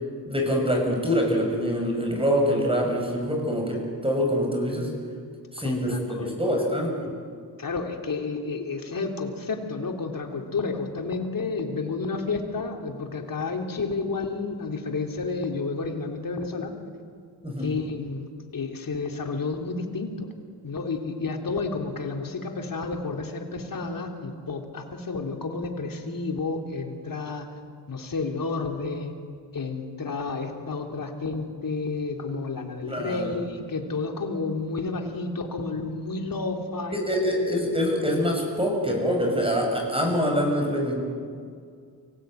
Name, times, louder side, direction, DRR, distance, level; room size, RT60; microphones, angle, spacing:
voice 1, 0.3-4.9 5.5-7.1 17.4-17.7 32.9-33.3 36.9-40.9, equal, 15° right, 2 dB, 6.9 m, -25 dB
voice 2, 5.6-6.7 7.6-16.7 17.6-18.2 18.5-20.3 20.6-27.5 27.9-29.1 29.5-37.0, left 4 dB, 55° left, 3 dB, 3.4 m, -31 dB
24.5 x 17.0 x 9.3 m, 2.2 s
cardioid pair, 70°, 41 cm